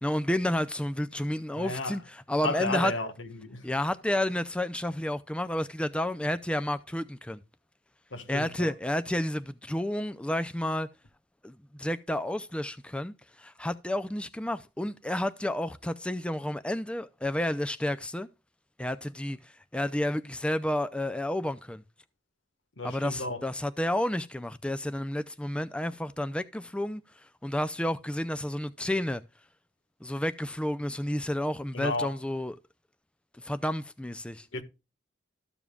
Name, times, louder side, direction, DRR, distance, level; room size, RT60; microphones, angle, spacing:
voice 1, 0.0-2.9 3.6-7.4 8.3-10.9 11.4-18.3 18.8-21.8 22.8-27.0 27.4-29.2 30.0-32.6 33.4-34.5, left 1 dB, 5° left, 0.4 m, -31 dB
voice 2, 1.5-2.0 2.4-3.7 8.1-8.7 22.8-23.4 31.7-32.1 34.5-34.6, left 2 dB, 80° left, 1.5 m, -33 dB
13.5 x 7.1 x 2.3 m
head